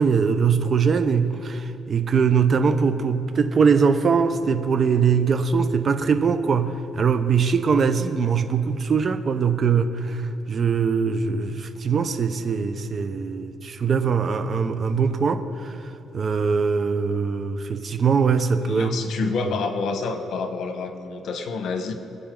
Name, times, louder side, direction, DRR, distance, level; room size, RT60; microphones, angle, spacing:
voice 1, 0.0-15.8 16.1-19.0 19.2-19.3, right 5 dB, 45° right, 9 dB, 0.9 m, -22 dB
voice 2, 18.7-21.9, left 4 dB, 70° left, 6 dB, 1.4 m, -28 dB
25.0 x 8.4 x 3.9 m, 2.9 s
cardioid pair, 90°, 0 cm